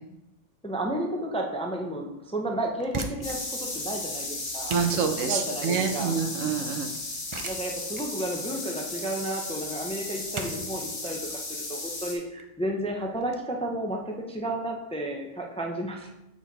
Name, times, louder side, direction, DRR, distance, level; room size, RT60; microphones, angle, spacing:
voice 1, 0.6-4.8 5.2-6.2 7.4-11.2 11.5-16.1, right 1 dB, 5° left, 1 dB, 0.6 m, -32 dB
sound 1, 2.8-13.4, right 3 dB, 40° right, 0.4 m, -41 dB
sound 2, 3.2-12.1, left 2 dB, 50° left, 1.5 m, -35 dB
voice 2, 4.7-6.9, right 6 dB, 80° right, 7 dB, 1.1 m, -27 dB
7.6 x 4.8 x 4.1 m, 0.90 s
omnidirectional pair, 1.3 m